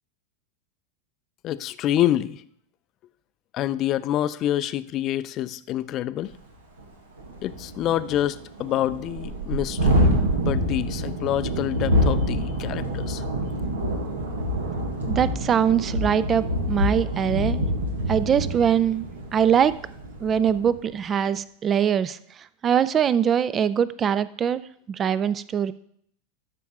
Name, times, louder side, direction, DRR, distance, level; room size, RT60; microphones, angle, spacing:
voice 1, 1.4-2.4 3.5-6.3 7.4-10.1 10.4-13.2, left 12 dB, 40° left, 15 dB, 0.4 m, -27 dB
Thunderstorm, 6.3-6.4 6.8-6.9 7.2-20.8, equal, 80° right, 1.4 m, -26 dB
voice 2, 15.1-17.7 18.1-19.7 20.2-22.2 22.6-24.6 24.9-25.7, right 8 dB, 30° right, 17 dB, 0.4 m, -22 dB
12.5 x 5.3 x 3.5 m, 0.67 s
hypercardioid pair, 90°, 0 cm